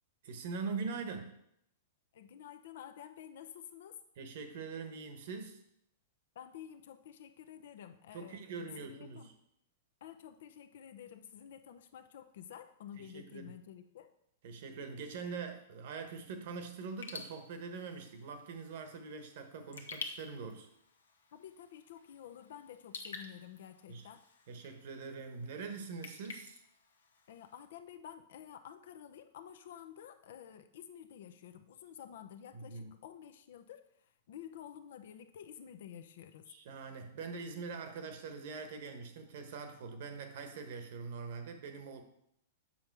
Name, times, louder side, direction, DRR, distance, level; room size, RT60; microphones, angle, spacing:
voice 1, 0.2-1.4 4.2-5.6 8.1-9.3 12.9-13.5 14.4-20.7 23.9-24.1 24.5-26.6 32.5-32.9 36.5-42.0, right 4 dB, 60° right, 7 dB, 1.2 m, -43 dB
voice 2, 2.1-4.0 6.3-8.4 8.8-9.3 10.0-14.1 21.3-24.2 27.3-33.8 34.3-36.5, left 9 dB, 65° left, 8 dB, 0.7 m, -51 dB
Raindrop / Drip, 16.9-27.7, left 4 dB, 85° left, 1.0 m, -51 dB
7.4 x 5.5 x 4.7 m, 0.78 s
hypercardioid pair, 115°, 0 cm